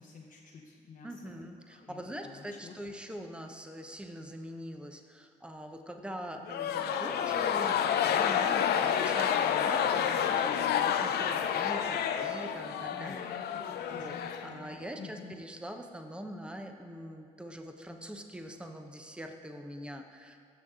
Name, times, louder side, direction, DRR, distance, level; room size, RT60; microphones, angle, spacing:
voice 1, 0.0-1.4 1.7-2.7 12.9-15.4, left 5 dB, 55° left, -3 dB, 1.1 m, -49 dB
voice 2, 1.0-13.6 13.9-14.1 14.4-20.4, equal, 5° right, 5 dB, 0.9 m, -43 dB
sound 1, 6.4-14.9, left 8 dB, 70° left, 0.6 m, -29 dB
16.0 x 6.4 x 3.8 m, 2.2 s
hypercardioid pair, 50°, 17 cm